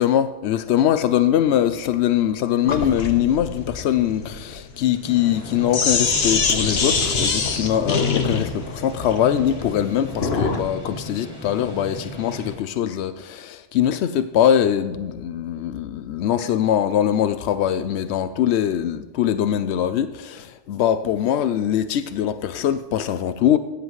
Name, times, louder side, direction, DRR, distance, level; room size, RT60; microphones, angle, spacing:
voice 1, 0.0-23.6, left 10 dB, 90° left, 0.8 m, -22 dB
Sink (filling or washing), 2.7-10.7, left 4 dB, 70° left, 1.3 m, -24 dB
sound 1, 5.0-12.6, equal, 20° left, 4.2 m, -37 dB
17.5 x 10.0 x 3.1 m
omnidirectional pair, 1.1 m